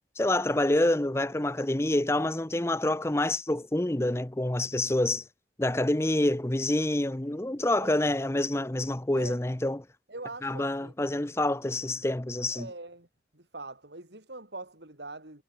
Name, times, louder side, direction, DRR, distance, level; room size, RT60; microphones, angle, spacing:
voice 1, 0.2-5.2 5.6-9.8 10.4-12.7, left 1 dB, 15° left, 0.6 m, -27 dB
voice 2, 7.8-8.1 9.1-9.4 10.1-10.9 12.5-13.1 13.3-15.4, right 2 dB, 80° right, 5.4 m, -43 dB
head